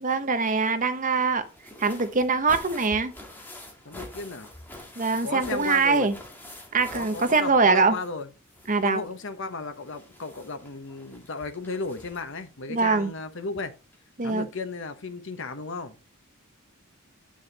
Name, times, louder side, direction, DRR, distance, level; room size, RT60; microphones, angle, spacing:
voice 1, 0.0-1.5 1.8-3.1 5.0-6.2 6.7-8.0 8.7-9.0 12.7-13.1 14.2-14.5, right 4 dB, 40° right, 0.9 m, -23 dB
sound 1, 1.4-8.2 8.5-12.4 13.5-13.6 13.9-14.0, left 1 dB, 10° left, 2.1 m, -46 dB
voice 2, 3.8-4.5 5.2-6.1 6.9-8.3 8.8-13.7 14.2-16.0, left 3 dB, 60° left, 1.1 m, -34 dB
9.0 x 6.4 x 4.1 m
head